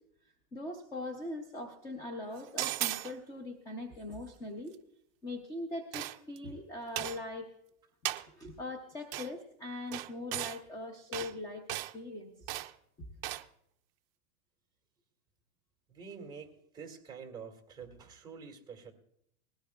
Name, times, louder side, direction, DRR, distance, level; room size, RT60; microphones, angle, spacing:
voice 1, 0.5-4.8 5.2-7.5 8.3-12.5 13.0-13.1, left 2 dB, 10° left, 5 dB, 0.5 m, -41 dB
sound 1, 2.6-3.1 5.9-6.4 7.0-7.2 8.1-8.3 9.1-9.3 9.9-10.6 11.1-11.3 11.7-11.9 12.5-12.7 13.2-13.5, right 16 dB, 45° right, 0.5 m, -36 dB
voice 2, 15.9-18.9, right 6 dB, 10° right, 1 dB, 2.0 m, -47 dB
20.0 x 17.0 x 2.3 m, 0.75 s
supercardioid pair, 165°, 43 cm